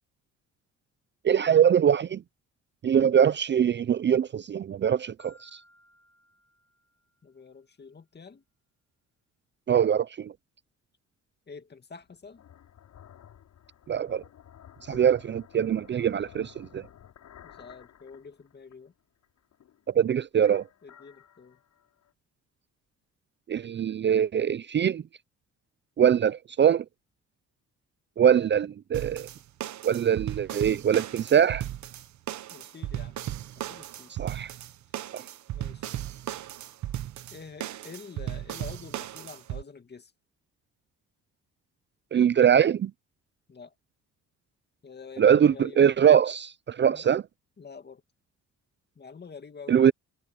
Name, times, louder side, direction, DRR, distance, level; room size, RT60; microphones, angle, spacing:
voice 1, 1.2-2.2 2.8-5.6 9.7-10.3 13.9-14.2 14.9-16.9 19.9-20.6 23.5-25.0 26.0-26.8 28.2-29.3 29.8-31.7 34.2-34.5 35.1-35.2 42.1-42.9 45.2-47.2 49.7-49.9, right 8 dB, 40° right, 0.5 m, -23 dB
Marimba xylophone, 5.2-7.4, equal, 50° left, 3.7 m, -60 dB
voice 2, 7.2-8.4 11.5-12.4 17.4-18.9 20.8-21.6 32.5-33.2 33.5-34.1 35.5-35.9 37.3-40.1 43.5-43.7 44.8-45.9 46.8-47.0 47.6-48.0 49.0-49.8, left 5 dB, 35° left, 2.3 m, -47 dB
sound 1, 12.0-18.9 19.2-20.0 20.4-22.1, left 10 dB, 70° left, 6.8 m, -53 dB
sound 2, 28.9-39.6, right 12 dB, 70° right, 1.3 m, -36 dB
cardioid pair, 90°, 30 cm